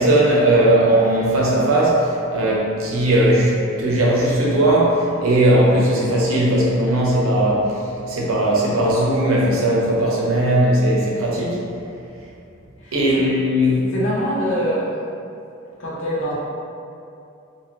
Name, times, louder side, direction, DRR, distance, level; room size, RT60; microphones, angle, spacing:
voice 1, 0.0-7.8 8.1-11.6 12.9-13.9, right 1 dB, 90° right, -4 dB, 0.7 m, -18 dB
voice 2, 12.8-13.3 13.9-15.1 15.8-16.3, equal, 70° left, -7 dB, 0.8 m, -24 dB
2.7 x 2.5 x 3.0 m, 2.6 s
head